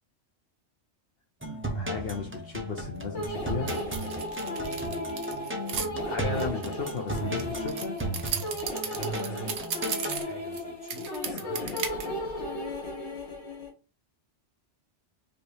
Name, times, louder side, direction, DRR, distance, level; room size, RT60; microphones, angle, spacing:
sound 1, 1.4-10.2, right 1 dB, 10° right, 0.8 m, -35 dB
voice 1, 1.7-3.8 6.0-8.0, left 5 dB, 60° left, 0.9 m, -35 dB
sound 2, 3.1-13.7, left 1 dB, 80° left, 2.0 m, -36 dB
sound 3, 3.7-5.9 6.4-10.6 10.9-12.1, right 6 dB, 75° right, 1.1 m, -35 dB
voice 2, 4.4-4.7 8.8-12.2, right 2 dB, 20° left, 1.4 m, -43 dB
5.2 x 3.0 x 3.2 m
omnidirectional pair, 1.2 m